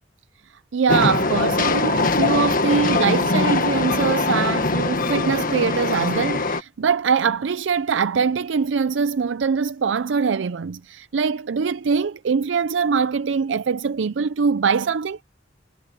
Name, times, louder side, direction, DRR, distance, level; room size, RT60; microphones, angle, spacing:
voice 1, 0.7-15.2, right 5 dB, 80° right, 0.5 m, -22 dB
Train, 0.9-6.6, left 3 dB, 50° left, 1.6 m, -22 dB
head